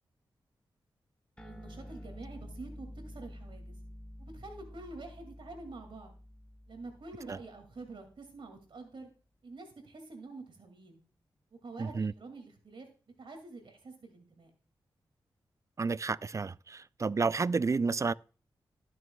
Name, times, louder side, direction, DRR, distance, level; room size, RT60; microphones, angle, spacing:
sound 1, 1.4-8.2, left 1 dB, 10° left, 1.4 m, -49 dB
voice 1, 1.4-3.8 4.2-6.1 6.7-9.1 9.4-11.0 11.5-12.9 13.2-14.5, right 3 dB, 65° right, 2.1 m, -47 dB
voice 2, 11.8-12.1 15.8-18.1, right 4 dB, 35° right, 0.3 m, -30 dB
15.0 x 6.3 x 2.2 m
supercardioid pair, 40°, 9 cm